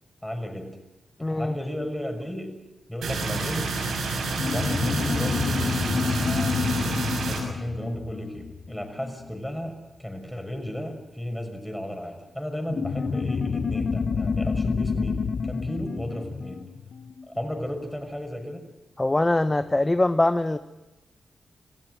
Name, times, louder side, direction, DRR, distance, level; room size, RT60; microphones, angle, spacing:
voice 1, 0.2-0.8 1.3-2.6 2.9-3.7 4.5-16.7 17.3-18.7, equal, 5° left, 5 dB, 6.1 m, -34 dB
voice 2, 1.2-1.6 19.0-20.6, left 2 dB, 20° left, 10 dB, 0.9 m, -22 dB
sound 1, 3.0-7.4, right 3 dB, 90° right, 6.3 m, -29 dB
sound 2, 4.3-9.3 12.7-17.6, left 5 dB, 60° left, 1.0 m, -28 dB
27.0 x 16.0 x 7.9 m, 1.0 s
cardioid pair, 50°, 0 cm